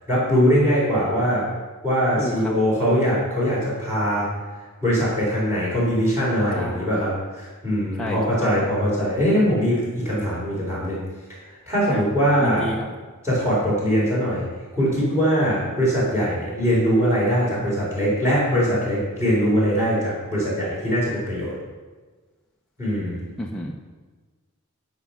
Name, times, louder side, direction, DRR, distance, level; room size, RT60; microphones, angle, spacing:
voice 1, 0.1-1.4 1.8-4.3 4.8-11.0 11.3-11.4 11.7-12.8 13.2-14.5 14.8-21.5 22.8-23.3, equal, 15° right, -8 dB, 4.0 m, -22 dB
voice 2, 2.2-2.5 2.8-3.0 6.5-7.0 8.0-8.6 11.9-12.0 12.4-12.9 23.4-23.7, equal, 5° left, -3 dB, 0.8 m, -30 dB
12.5 x 6.0 x 5.8 m, 1.4 s
head